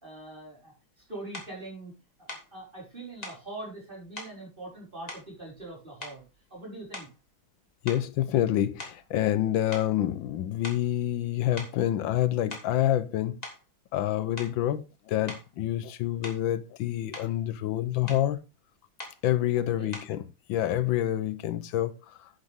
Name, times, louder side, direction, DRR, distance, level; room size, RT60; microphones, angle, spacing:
voice 1, 0.0-0.7 1.1-1.9 2.2-6.2 6.5-7.1 19.6-19.9, right 2 dB, 25° right, 5.5 m, -42 dB
sound 1, 1.3-1.6 2.3-2.5 3.2-3.5 4.2-4.4 5.1-5.7 6.0-6.4 6.9-7.3 7.9-9.4 9.7-9.9 10.6-10.9 11.6-11.8 12.3-12.8 13.4-13.6 14.4-14.6 15.3-15.5 16.2-16.5 16.9-17.3 18.1-18.3 19.0-19.2 19.9-20.2, left 1 dB, 20° left, 2.7 m, -42 dB
voice 2, 7.8-13.4 13.9-18.4 19.2-20.2 20.5-22.3, left 12 dB, 85° left, 1.5 m, -27 dB
10.5 x 8.3 x 3.6 m
omnidirectional pair, 2.1 m